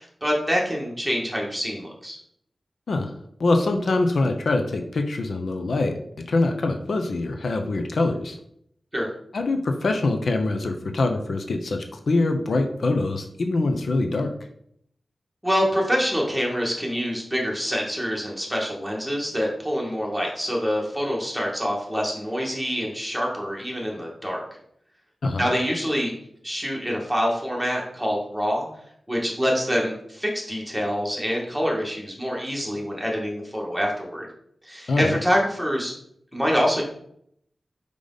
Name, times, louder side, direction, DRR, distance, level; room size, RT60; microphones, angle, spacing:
voice 1, 0.0-2.2 8.9-9.1 15.4-24.4 25.4-26.1 26.4-28.7 29.1-34.3 34.6-35.9 36.3-36.8, equal, ahead, -2 dB, 1.9 m, -26 dB
voice 2, 3.4-5.9 6.3-8.4 9.3-14.3 25.2-25.5 34.9-35.2, left 2 dB, 75° left, 5 dB, 0.7 m, -24 dB
5.1 x 5.0 x 4.0 m, 0.69 s
wide cardioid pair, 90°, 0 cm